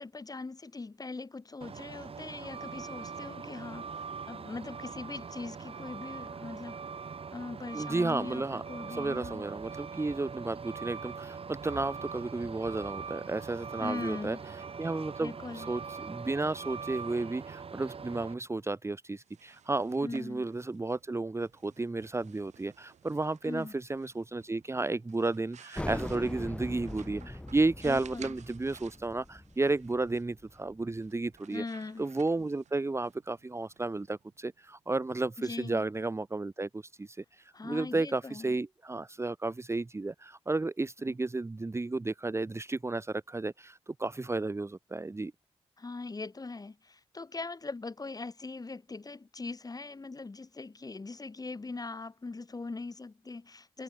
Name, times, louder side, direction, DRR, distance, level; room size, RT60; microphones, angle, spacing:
voice 1, 0.0-6.8 7.3-9.4 13.8-14.4 15.2-15.7 20.0-20.5 23.4-23.7 27.8-28.3 31.5-32.0 35.4-35.9 37.5-38.6 45.8-53.8, left 3 dB, 30° left, 4.7 m, -41 dB
Truck, 1.6-18.3, right 5 dB, 55° right, 3.5 m, -42 dB
voice 2, 7.7-8.6 8.9-14.4 14.8-31.6 32.0-45.3, right 2 dB, 25° right, 1.3 m, -33 dB
sound 1, 19.1-34.8, right 8 dB, 80° right, 8.0 m, -58 dB
sound 2, 25.7-31.1, left 1 dB, 10° left, 1.3 m, -41 dB
cardioid pair, 75°, 12 cm